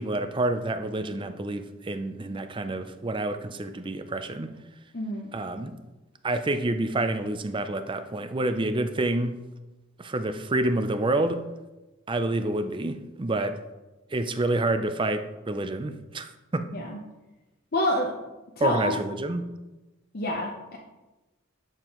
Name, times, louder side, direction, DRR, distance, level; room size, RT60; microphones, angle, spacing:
voice 1, 0.0-4.5 5.3-5.7 6.2-9.4 10.0-11.4 12.1-13.6 14.1-16.7 18.6-19.5, right 2 dB, 25° right, 9 dB, 0.5 m, -28 dB
voice 2, 4.9-5.3 16.7-17.0 17.7-18.1 18.6-18.9 20.1-20.8, left 1 dB, 45° left, -1 dB, 0.8 m, -27 dB
11.0 x 7.0 x 3.1 m, 1.1 s
head